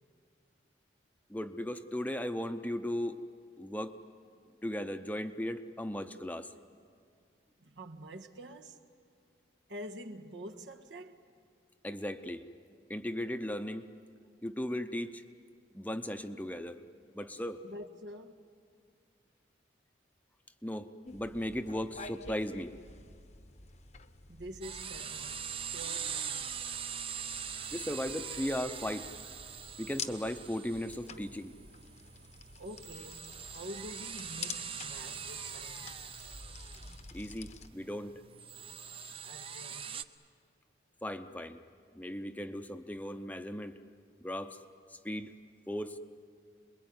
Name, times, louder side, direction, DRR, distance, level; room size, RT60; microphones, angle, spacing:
voice 1, 1.3-3.2 3.6-4.0 4.6-6.5 11.8-12.4 12.9-13.9 14.4-15.2 15.7-16.8 17.1-17.6 20.6-22.7 27.7-29.1 29.8-31.5 37.1-38.2 41.0-41.6 41.9-43.7 44.2-44.6 44.9-45.3 45.7-46.0, left 1 dB, 10° left, 0.7 m, -37 dB
voice 2, 7.6-8.8 9.7-11.2 17.6-18.4 24.3-26.5 32.6-36.1 39.2-39.9, equal, 75° right, 1.6 m, -47 dB
sound 1, 21.0-37.7, left 5 dB, 40° left, 0.9 m, -49 dB
sound 2, 24.6-40.0, right 7 dB, 30° right, 0.7 m, -43 dB
27.5 x 22.0 x 9.6 m
head